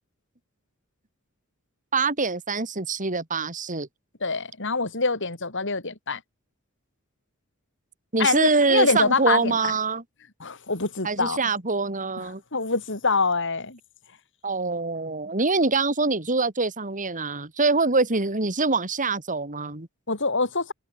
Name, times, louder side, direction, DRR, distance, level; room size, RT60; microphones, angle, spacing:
voice 1, 1.9-3.9 8.1-10.0 11.0-12.4 14.4-19.9, right 3 dB, 35° right, 2.9 m, -24 dB
voice 2, 4.2-6.2 8.2-9.6 10.4-11.4 12.2-13.8 20.1-20.7, left 4 dB, 60° left, 5.0 m, -25 dB
head